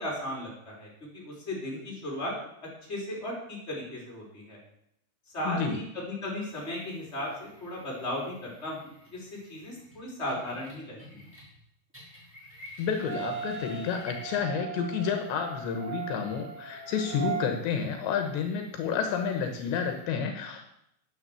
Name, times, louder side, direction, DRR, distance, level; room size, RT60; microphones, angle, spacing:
voice 1, 0.0-2.3 2.9-4.6 5.3-8.8 9.1-11.2, left 1 dB, 15° left, -2 dB, 4.6 m, -36 dB
voice 2, 5.4-5.8 12.8-20.7, left 6 dB, 75° left, 5 dB, 3.3 m, -30 dB
sound 1, 6.5-11.6 11.9-20.0, left 1 dB, 5° right, 5.0 m, -53 dB
sound 2, 13.0-17.5, right 7 dB, 80° right, 5.7 m, -38 dB
10.5 x 8.9 x 8.2 m, 0.75 s
omnidirectional pair, 5.3 m